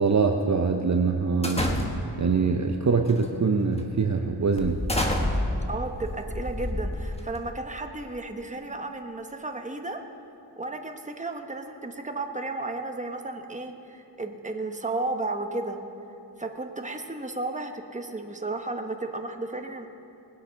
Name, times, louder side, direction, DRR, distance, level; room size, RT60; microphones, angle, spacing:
voice 1, 0.0-1.6 2.2-4.8, right 4 dB, 40° right, 4 dB, 0.7 m, -23 dB
sound 1, 1.4-2.3 3.1-3.3 3.8-3.9 4.6-7.5, left 1 dB, 15° left, 1.3 m, -29 dB
voice 2, 5.7-10.0 10.6-15.8 16.4-19.9, right 2 dB, 15° right, 5 dB, 1.0 m, -33 dB
20.0 x 8.2 x 5.7 m, 2.8 s
wide cardioid pair, 85°, 43 cm